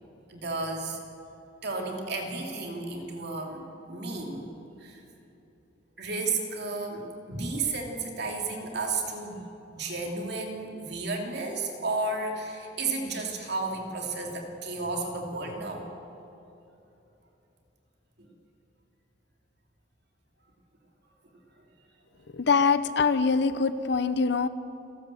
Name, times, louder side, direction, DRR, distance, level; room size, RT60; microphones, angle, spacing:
voice 1, 0.3-1.0 1.6-4.5 4.8-5.0 6.0-9.4 9.7-15.9, right 3 dB, 65° right, 1 dB, 2.9 m, -33 dB
voice 2, 22.3-24.5, left 5 dB, 65° left, 13 dB, 0.7 m, -24 dB
29.5 x 12.5 x 7.7 m, 2.9 s
head